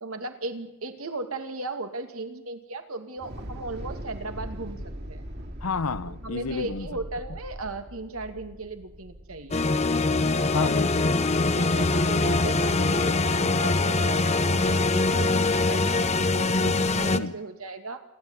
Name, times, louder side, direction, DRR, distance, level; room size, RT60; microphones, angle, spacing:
voice 1, 0.0-4.8 5.1-5.3 6.1-9.7 11.5-18.0, right 2 dB, 85° right, 2.3 m, -36 dB
Thunder / Explosion, 3.2-11.4, equal, 50° right, 2.8 m, -41 dB
voice 2, 5.6-6.9 10.4-11.4 17.1-17.4, left 4 dB, 85° left, 0.8 m, -31 dB
sound 1, 9.5-17.2, left 3 dB, 30° left, 0.8 m, -23 dB
28.0 x 11.5 x 9.7 m
head